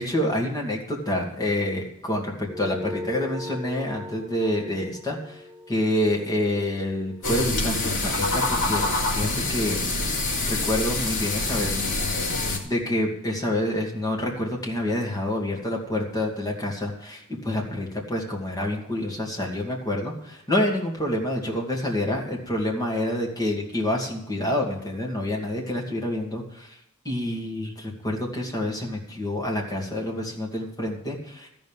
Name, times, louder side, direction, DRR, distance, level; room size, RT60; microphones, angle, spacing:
voice 1, 0.0-5.4 5.7-8.8 9.1-9.8 10.4-11.8 12.6-26.7 27.0-31.5, left 1 dB, 20° left, -1 dB, 2.4 m, -27 dB
sound 1, 2.5-7.3, left 2 dB, ahead, 2.9 m, -39 dB
sound 2, 7.2-12.6, left 2 dB, 60° left, 2.5 m, -26 dB
13.5 x 5.4 x 9.1 m, 0.82 s
head